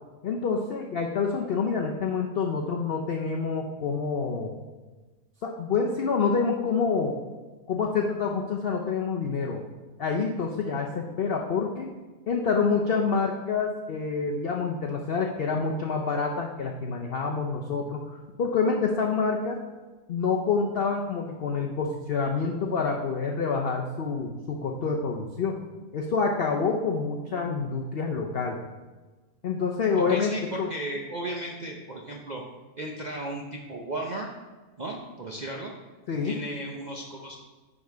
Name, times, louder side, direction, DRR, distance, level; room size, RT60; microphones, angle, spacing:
voice 1, 0.2-4.5 5.4-7.2 7.7-9.6 10.0-11.9 12.3-18.0 18.4-19.6 20.1-25.6 25.9-28.6 29.4-30.3 30.6-30.7 36.1-36.4, left 5 dB, 60° left, 1 dB, 0.6 m, -27 dB
voice 2, 29.9-32.4 32.8-34.3 34.8-35.7 36.2-37.4, right 1 dB, 60° right, -1 dB, 0.4 m, -35 dB
9.6 x 3.8 x 4.6 m, 1.3 s
omnidirectional pair, 1.7 m